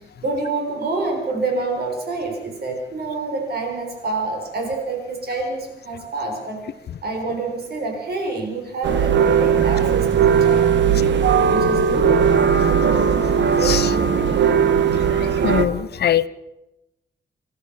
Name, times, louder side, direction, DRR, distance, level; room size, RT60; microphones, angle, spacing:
voice 1, 0.2-6.6 7.0-11.2 11.5-12.2 13.8-14.5, right 3 dB, 60° right, 2 dB, 6.6 m, -27 dB
sound 1, 8.8-15.7, right 7 dB, 80° right, 1.7 m, -18 dB
voice 2, 13.6-13.9 15.2-16.3, left 10 dB, 60° left, 16 dB, 0.8 m, -22 dB
26.5 x 14.0 x 7.4 m, 0.93 s
wide cardioid pair, 175°, 18 cm